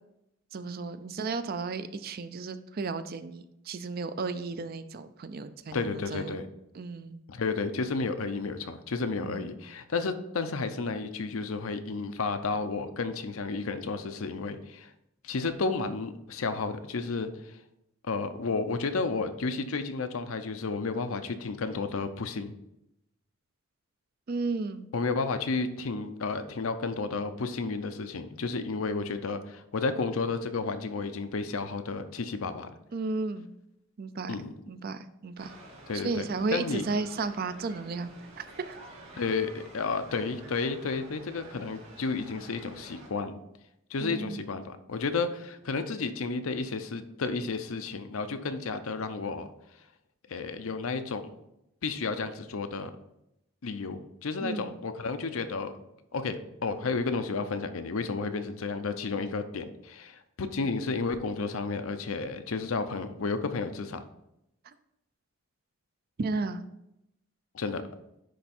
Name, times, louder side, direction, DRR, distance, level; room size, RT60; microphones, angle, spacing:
voice 1, 0.5-6.4 6.7-7.2 9.2-9.5 24.3-24.9 32.9-33.5 34.0-34.4 34.7-35.5 35.9-38.8 44.0-44.4 54.4-54.8 64.6-64.7 66.2-66.6, right 3 dB, 45° right, 12 dB, 0.4 m, -34 dB
voice 2, 5.7-6.4 7.3-14.9 15.2-17.6 18.1-22.5 24.9-32.7 34.3-34.5 35.9-36.2 36.5-36.8 39.2-43.3 43.9-49.5 50.3-51.3 51.8-52.9 53.6-55.7 56.1-64.0 67.5-67.8, left 4 dB, 75° left, 9 dB, 0.6 m, -32 dB
sound 1, 35.4-43.1, right 2 dB, 70° right, 2.1 m, -49 dB
10.0 x 3.4 x 4.3 m, 0.84 s
head